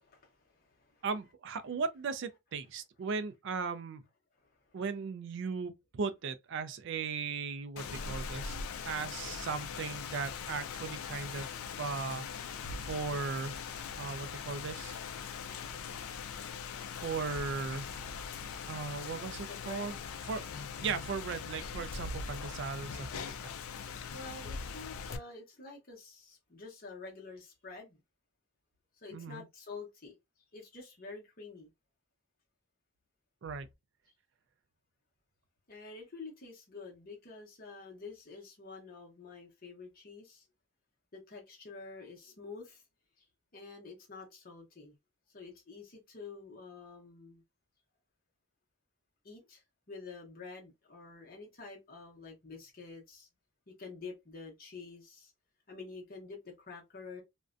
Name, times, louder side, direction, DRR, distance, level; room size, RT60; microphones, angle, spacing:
voice 1, 0.0-1.0 4.4-4.8 19.5-20.0 24.1-28.0 29.0-30.2 30.5-31.7 35.7-40.5 41.1-42.8 43.2-43.3 43.5-45.0 45.3-47.4 49.2-53.3 53.7-55.3 55.7-57.2, left 4 dB, 40° left, 0.9 m, -48 dB
voice 2, 1.0-4.0 4.7-8.6 8.8-11.5 11.8-12.3 12.8-13.6 14.0-15.0 17.0-17.9 18.7-20.0 20.3-20.5 20.8-23.5 29.1-29.4 33.4-33.7, right 5 dB, 55° right, 0.3 m, -37 dB
Rain, 7.8-25.2, left 6 dB, 75° left, 0.4 m, -41 dB
2.4 x 2.1 x 2.4 m
head